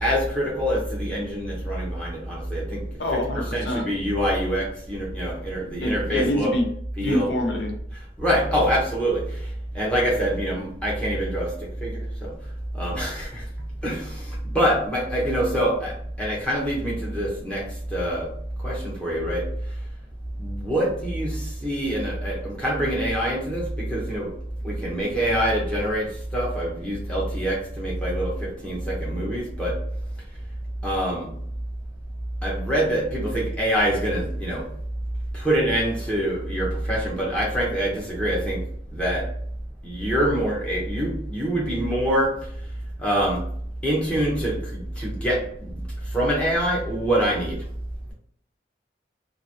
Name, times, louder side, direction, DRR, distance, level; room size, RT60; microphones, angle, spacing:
voice 1, 0.0-2.8 3.1-3.2 3.5-6.5 7.0-7.3 8.2-9.2 9.7-11.5 11.8-12.3 12.7-13.4 13.8-17.6 17.9-18.3 18.6-19.4 20.4-24.3 24.6-26.1 26.3-29.7 30.8-31.3 32.4-34.6 35.3-38.6 38.9-39.2 39.8-42.3 43.0-43.4 43.8-45.8 46.1-47.6, equal, 5° left, -6 dB, 0.9 m, -25 dB
voice 2, 3.0-3.9 5.8-6.7 7.0-7.7, left 1 dB, 85° left, 2 dB, 0.6 m, -25 dB
3.0 x 2.6 x 2.7 m, 0.64 s
head